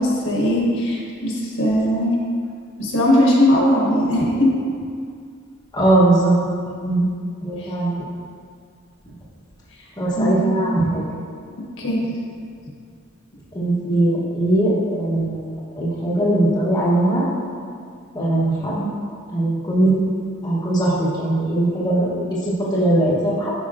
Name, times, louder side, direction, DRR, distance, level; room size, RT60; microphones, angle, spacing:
voice 1, 0.0-2.2 2.8-4.5 7.6-7.7 10.1-10.7 11.8-12.1, left 1 dB, 60° left, -4 dB, 1.3 m, -19 dB
voice 2, 5.7-6.3 6.8-7.1 7.4-8.0 9.1-9.2 10.0-11.0 13.5-17.3 18.1-18.9 19.3-20.0 20.4-23.5, right 1 dB, 20° left, -8 dB, 1.0 m, -20 dB
8.5 x 5.4 x 2.5 m, 2.2 s
head